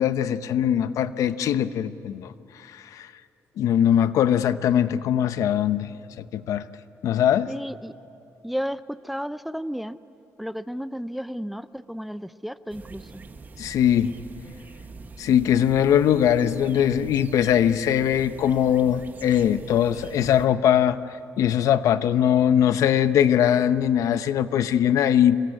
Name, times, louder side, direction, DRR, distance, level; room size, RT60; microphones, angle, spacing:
voice 1, 0.0-2.3 2.7-3.1 3.6-5.9 6.3-6.6 7.0-7.5 13.6-14.1 15.2-21.0 21.4-25.4, left 9 dB, 75° left, 12 dB, 0.9 m, -21 dB
voice 2, 7.5-7.9 8.4-10.0 10.4-13.0, equal, ahead, 14 dB, 0.6 m, -32 dB
sound 1, 12.7-20.5, right 4 dB, 30° right, 1.3 m, -44 dB
27.0 x 22.0 x 9.8 m, 2.7 s
cardioid pair, 105°, 6 cm